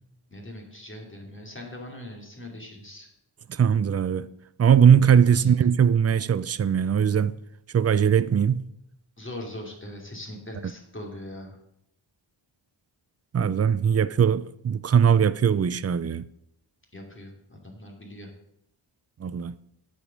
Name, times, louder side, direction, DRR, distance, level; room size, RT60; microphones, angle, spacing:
voice 1, 0.3-3.1 5.2-5.5 9.2-11.6 16.9-18.3, left 1 dB, 25° left, 2.6 m, -41 dB
voice 2, 3.5-4.3 4.6-7.4 7.7-8.6 13.3-16.2 19.2-19.5, right 7 dB, 35° right, 0.4 m, -20 dB
9.4 x 5.1 x 7.2 m
wide cardioid pair, 80°, 49 cm